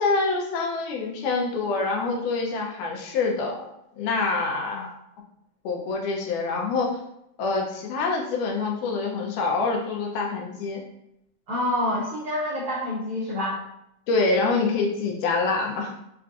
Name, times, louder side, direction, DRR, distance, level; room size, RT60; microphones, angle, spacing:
voice 1, 0.0-3.7 4.0-4.9 5.7-7.0 7.4-10.8 14.1-15.9, left 3 dB, 80° left, 0 dB, 2.1 m, -26 dB
voice 2, 11.5-13.6, left 1 dB, 80° right, -8 dB, 1.2 m, -27 dB
5.7 x 2.5 x 2.3 m, 0.79 s
omnidirectional pair, 3.8 m